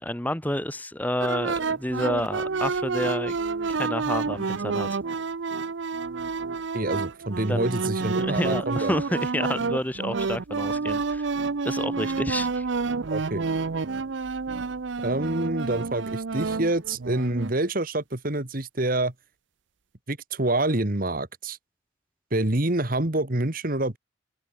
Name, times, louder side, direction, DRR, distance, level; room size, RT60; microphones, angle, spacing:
voice 1, 0.0-3.4 3.7-4.9 7.5-7.7 8.0-11.3 11.6-12.7, left 1 dB, 10° left, 1.3 m, -29 dB
sound 1, 1.2-17.5, right 4 dB, 65° right, 0.6 m, -29 dB
voice 2, 6.7-8.9 13.1-13.4 15.0-19.1 20.1-21.6 22.3-24.0, right 2 dB, 45° right, 1.9 m, -27 dB
open air
head